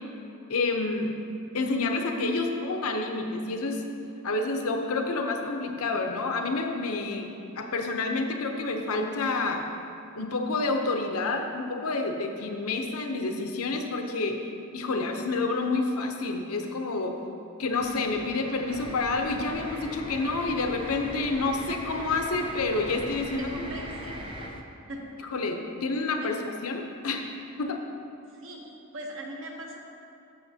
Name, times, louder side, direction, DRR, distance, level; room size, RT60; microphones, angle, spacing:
voice 1, 0.5-1.1 1.5-3.8 4.2-9.7 10.1-14.4 14.7-17.2 17.6-23.5 25.3-27.2 27.6-27.8, left 3 dB, 80° left, 4 dB, 0.7 m, -29 dB
sound 1, 17.7-24.5, right 1 dB, 25° right, 0.6 m, -42 dB
sound 2, 18.7-24.6, left 1 dB, 20° left, 0.3 m, -43 dB
voice 2, 23.4-24.2 24.9-25.1 26.2-26.3 28.3-28.6 28.9-29.8, right 1 dB, 65° right, 0 dB, 1.1 m, -40 dB
12.5 x 6.5 x 2.8 m, 2.7 s
head